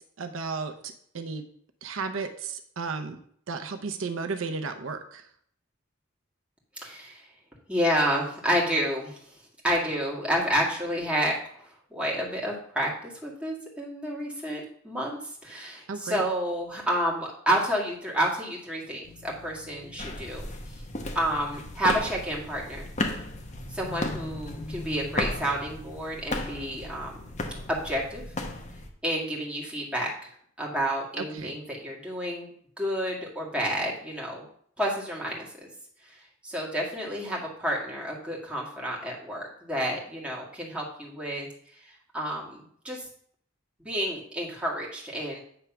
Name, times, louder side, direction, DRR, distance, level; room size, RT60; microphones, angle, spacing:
voice 1, 0.2-1.5 1.8-3.2 3.5-5.2 15.9-16.2 31.2-31.6, right 4 dB, 85° right, 6 dB, 0.7 m, -34 dB
voice 2, 6.8-7.2 7.7-9.2 9.6-20.5 21.2-22.9 23.7-27.2 27.7-28.2 29.0-30.3 30.6-32.5 32.8-34.4 34.8-35.5 36.4-41.5 42.1-43.1 43.8-45.4, equal, 5° right, -4 dB, 1.8 m, -30 dB
sound 1, 19.0-28.6, left 2 dB, 75° left, 1.3 m, -46 dB
sound 2, 20.0-28.9, left 2 dB, 35° left, 0.8 m, -35 dB
8.8 x 3.4 x 5.9 m, 0.63 s
head